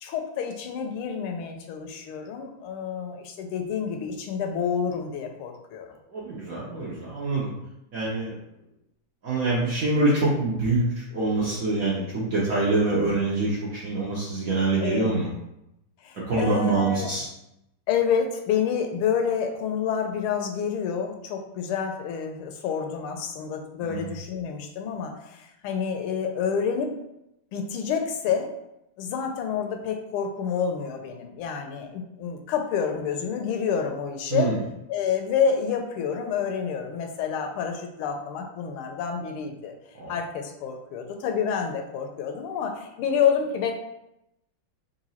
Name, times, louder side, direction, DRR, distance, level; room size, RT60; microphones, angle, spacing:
voice 1, 0.0-5.9 13.0-13.1 14.8-15.1 16.0-17.1 17.9-26.9 27.5-28.5 29.0-34.5 34.9-39.7 40.1-43.7, left 7 dB, 80° left, 4 dB, 1.4 m, -28 dB
voice 2, 6.1-7.5 7.9-8.4 9.2-15.3 16.3-17.3 23.8-24.1 34.3-34.6 39.9-40.1, right 2 dB, 60° right, -6 dB, 0.9 m, -25 dB
3.9 x 2.6 x 4.1 m, 0.85 s
omnidirectional pair, 2.4 m